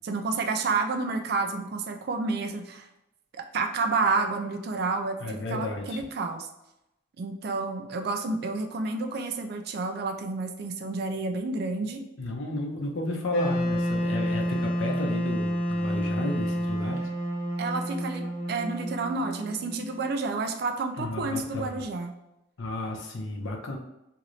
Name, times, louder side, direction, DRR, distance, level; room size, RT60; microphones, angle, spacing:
voice 1, 0.0-2.9 3.3-6.5 7.2-12.0 17.6-22.2, right 3 dB, 50° right, 6 dB, 0.3 m, -30 dB
voice 2, 5.2-6.0 12.2-17.1 21.0-21.7 22.6-23.8, left 1 dB, 70° left, 2 dB, 0.6 m, -32 dB
Wind instrument woodwind instrument, 13.3-20.3, equal, 45° left, 0.9 m, -29 dB
2.7 x 2.5 x 3.1 m, 0.88 s
head